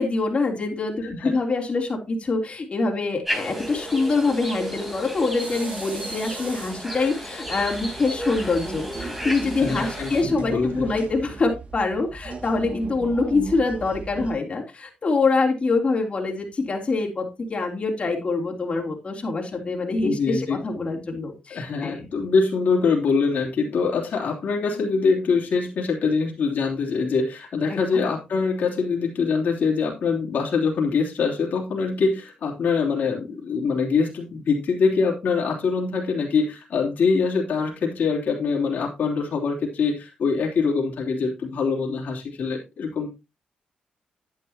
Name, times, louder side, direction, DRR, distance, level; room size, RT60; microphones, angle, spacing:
voice 1, 0.0-22.1 27.7-28.0, left 3 dB, 40° left, 0 dB, 3.3 m, -25 dB
sound 1, 3.2-10.2, equal, 5° right, 3.8 m, -33 dB
sound 2, 3.6-11.4, right 3 dB, 70° right, 6.6 m, -44 dB
sound 3, 7.4-14.3, right 3 dB, 45° right, 2.2 m, -37 dB
voice 2, 9.6-10.8 20.0-20.6 21.5-43.1, left 5 dB, 70° left, -2 dB, 3.2 m, -24 dB
10.5 x 9.7 x 2.9 m, 0.25 s
cardioid pair, 70°, 3 cm